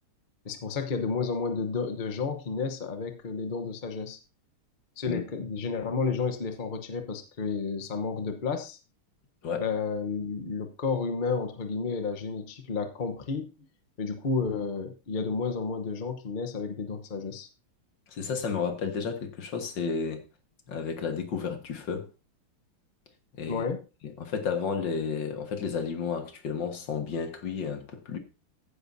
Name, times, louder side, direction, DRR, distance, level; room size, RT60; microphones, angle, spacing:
voice 1, 0.4-4.2 5.0-8.8 9.6-13.5 14.0-17.5 23.5-23.8, left 5 dB, 40° left, 0.7 m, -31 dB
voice 2, 18.1-20.2 20.7-22.1 23.3-23.6 24.0-28.2, left 6 dB, 60° left, 2.1 m, -32 dB
15.0 x 9.9 x 2.7 m
omnidirectional pair, 2.3 m